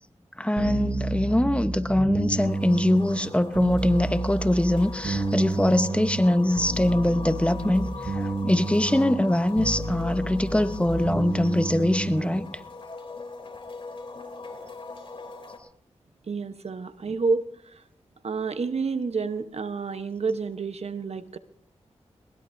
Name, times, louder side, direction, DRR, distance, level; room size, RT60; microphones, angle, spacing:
voice 1, 0.4-12.4, left 1 dB, 10° left, 1.1 m, -23 dB
sound 1, 0.6-12.4, right 3 dB, 80° right, 6.2 m, -31 dB
sound 2, 2.4-15.6, left 4 dB, 45° left, 3.7 m, -41 dB
voice 2, 16.3-17.5 18.2-21.4, right 4 dB, 60° right, 1.1 m, -29 dB
21.5 x 20.5 x 2.7 m
cardioid pair, 50°, 12 cm